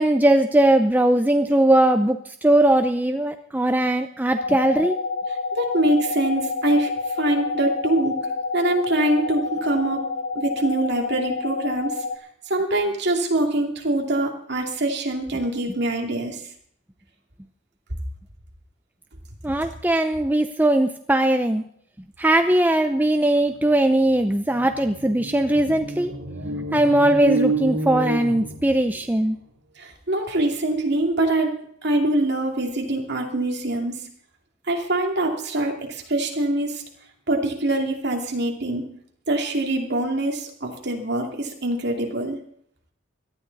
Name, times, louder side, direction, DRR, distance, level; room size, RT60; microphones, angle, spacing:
voice 1, 0.0-5.0 19.4-21.6 22.2-26.1 26.7-29.4, right 1 dB, 10° right, 7 dB, 0.5 m, -19 dB
sound 1, 4.4-12.2, left 3 dB, 75° left, 0.9 m, -28 dB
voice 2, 5.5-8.2 8.5-10.1 10.3-12.0 12.5-16.5 29.8-31.5 31.8-34.1 34.7-36.8 37.3-38.9 39.3-42.4, right 1 dB, 55° right, 1 dB, 2.6 m, -24 dB
sound 2, 23.7-23.8 24.1-29.1, right 2 dB, 85° right, 3.2 m, -29 dB
18.0 x 12.5 x 4.1 m, 0.68 s
head